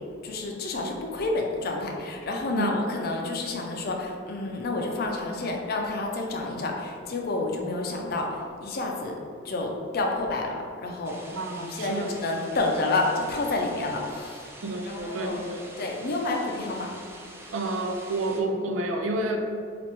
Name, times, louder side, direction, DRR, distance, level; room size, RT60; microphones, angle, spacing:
voice 1, 0.2-9.2 9.4-11.2 11.6-14.4 14.9-15.4 15.8-16.9, left 2 dB, 50° left, 1 dB, 0.5 m, -29 dB
voice 2, 2.5-2.9 11.3-12.1 14.6-15.7 17.5-19.4, right 2 dB, 80° right, 3 dB, 0.4 m, -29 dB
sound 1, 11.0-18.4, right 1 dB, 15° right, 0.3 m, -46 dB
4.4 x 2.5 x 2.9 m, 2.3 s
head